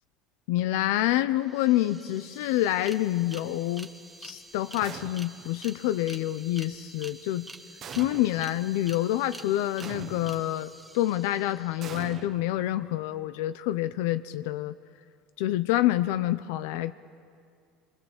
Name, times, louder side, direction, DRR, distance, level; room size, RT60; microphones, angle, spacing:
voice 1, 0.5-3.9 4.2-7.5 8.0-14.8 15.4-16.9, left 14 dB, 80° left, 13 dB, 0.6 m, -27 dB
sound 1, 1.2-1.3 1.4-12.2, right 1 dB, 5° right, 1.4 m, -48 dB
sound 2, 4.8-5.6 7.8-8.6 9.8-10.6 11.8-13.0, right 8 dB, 35° right, 1.0 m, -43 dB
26.5 x 24.0 x 7.3 m, 2.2 s
cardioid pair, 140°, 0 cm